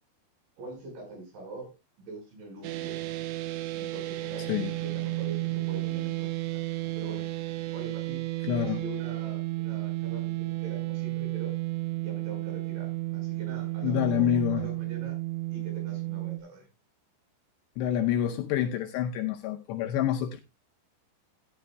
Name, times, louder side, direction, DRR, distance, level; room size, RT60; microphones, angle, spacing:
voice 1, 0.6-1.7 2.0-3.0 3.8-6.6 7.0-7.3 7.7-8.2 8.6-11.5 12.0-15.2 15.5-16.7, right 2 dB, 70° right, 7.3 m, -44 dB
sound 1, 2.6-16.4, right 19 dB, 85° right, 3.4 m, -32 dB
voice 2, 8.4-8.8 13.8-14.7 17.8-20.4, left 10 dB, 75° left, 2.7 m, -27 dB
14.5 x 11.0 x 2.2 m
omnidirectional pair, 5.6 m